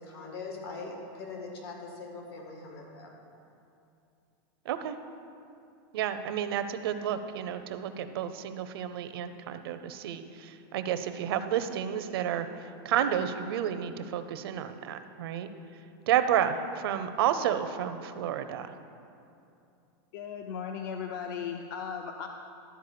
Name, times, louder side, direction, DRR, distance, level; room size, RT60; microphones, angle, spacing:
voice 1, 0.0-3.1, left 3 dB, 80° left, 0 dB, 2.2 m, -41 dB
voice 2, 5.9-12.5 12.8-15.5 16.1-18.8, right 9 dB, 75° right, 10 dB, 0.6 m, -31 dB
voice 3, 20.1-22.3, left 7 dB, 60° left, 4 dB, 0.5 m, -36 dB
12.5 x 4.6 x 6.7 m, 2.6 s
supercardioid pair, 165°, 13 cm